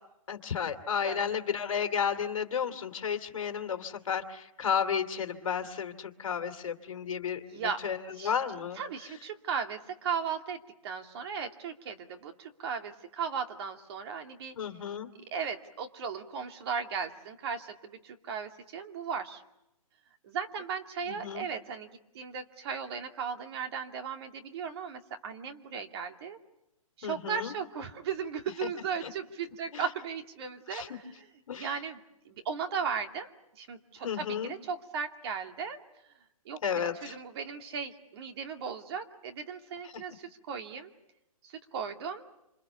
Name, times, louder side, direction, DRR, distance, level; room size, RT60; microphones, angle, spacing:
voice 1, 0.3-8.8 14.6-15.1 21.1-21.5 27.0-27.5 28.6-28.7 29.0-29.1 29.7-29.8 30.7-30.9 31.5-31.8 34.0-34.5 36.6-37.2 39.8-40.0, left 7 dB, 60° left, 7 dB, 2.6 m, -33 dB
voice 2, 7.4-7.8 8.2-8.3 8.8-14.5 15.3-19.4 20.2-21.9 22.1-26.4 27.0-31.3 31.6-32.0 32.3-35.8 36.5-40.9 41.4-42.3, right 6 dB, 45° right, 5 dB, 2.4 m, -36 dB
27.5 x 27.0 x 7.0 m, 0.87 s
hypercardioid pair, 155°, 18 cm